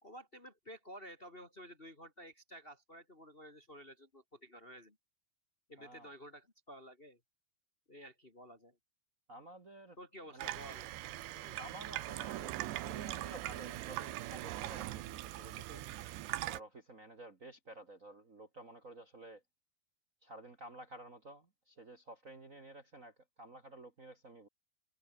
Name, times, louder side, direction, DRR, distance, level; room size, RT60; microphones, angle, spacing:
voice 1, 0.0-5.0 5.7-7.2 7.9-8.8 10.0-10.9 11.3-11.6, equal, 35° left, 0.9 m, -52 dB
voice 2, 5.8-6.1 9.3-10.0 10.3-10.5 11.6-15.8 16.5-19.4 20.2-24.5, right 1 dB, 65° right, 0.8 m, -52 dB
Water tap faucet / Sink (filling or washing), 10.4-16.6, right 15 dB, 80° right, 3.3 m, -41 dB
omnidirectional pair, 4.9 m